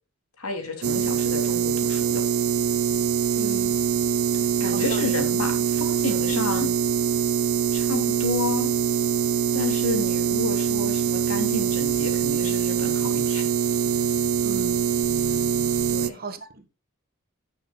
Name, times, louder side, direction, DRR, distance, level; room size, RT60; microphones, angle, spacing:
voice 1, 0.4-2.2 4.3-6.7 7.7-8.7 9.5-13.5 15.9-16.2, left 2 dB, 85° left, 3.0 m, -31 dB
sound 1, 0.8-16.1, right 8 dB, 75° right, 0.7 m, -23 dB
voice 2, 3.3-3.8 4.7-5.1 14.4-14.8 15.3-15.4 16.1-16.7, right 2 dB, 45° right, 1.5 m, -37 dB
16.5 x 6.7 x 2.3 m
head